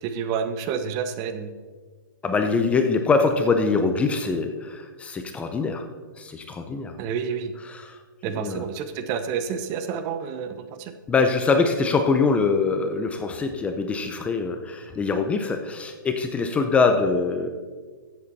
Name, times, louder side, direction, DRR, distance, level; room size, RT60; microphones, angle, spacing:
voice 1, 0.0-1.5 7.0-7.5 8.2-10.9, right 7 dB, 30° right, 10 dB, 0.7 m, -29 dB
voice 2, 2.2-5.9 6.2-7.0 7.7-8.0 8.3-8.6 11.1-17.5, left 4 dB, 10° left, 6 dB, 0.6 m, -23 dB
14.0 x 7.8 x 4.1 m, 1.5 s
hypercardioid pair, 150°, 12 cm